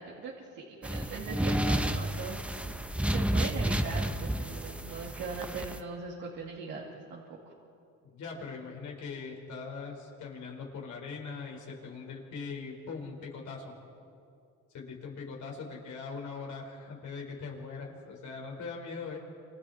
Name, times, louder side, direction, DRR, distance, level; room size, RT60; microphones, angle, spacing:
voice 1, 0.0-2.6 3.1-7.4, right 4 dB, 90° right, -5 dB, 2.9 m, -40 dB
sound 1, 0.8-5.8, right 1 dB, 5° right, 1.0 m, -31 dB
voice 2, 8.0-13.7 14.7-19.2, left 4 dB, 75° left, 0 dB, 5.1 m, -41 dB
28.0 x 27.5 x 4.4 m, 2.5 s
cardioid pair, 90°, 30 cm